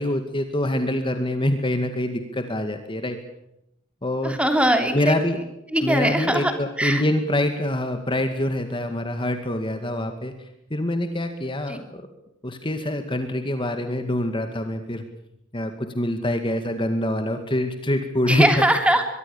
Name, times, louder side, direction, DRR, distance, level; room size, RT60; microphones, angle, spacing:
voice 1, 0.0-3.2 4.0-4.4 4.9-5.4 5.8-10.3 10.7-12.0 12.4-15.0 15.5-18.5, left 1 dB, 25° left, 7 dB, 2.1 m, -25 dB
voice 2, 4.2-5.2 5.7-6.5 6.8-7.0 11.7-11.8 18.2-19.1, right 1 dB, 5° right, 6 dB, 3.2 m, -21 dB
23.5 x 23.0 x 7.1 m, 0.81 s
head